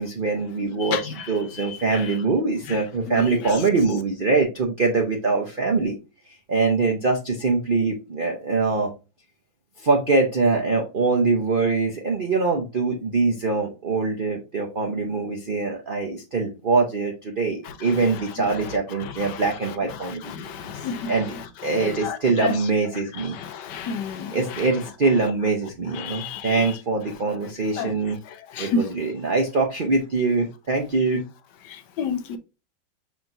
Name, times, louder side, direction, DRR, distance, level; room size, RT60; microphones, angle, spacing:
voice 1, 0.0-6.0 6.5-8.9 9.8-21.3 21.6-23.4 24.3-28.2 28.6-31.2, right 3 dB, 55° right, 0.5 m, -23 dB
voice 2, 1.6-2.1 2.7-2.8 3.1-3.6 18.6-18.7 19.0-19.4 20.0-21.4 21.7-22.5 23.2-24.7 25.9-26.7 27.8-27.9 28.5-28.8 31.7-32.4, left 5 dB, 70° left, 1.3 m, -31 dB
5.7 x 3.5 x 2.6 m
omnidirectional pair, 2.1 m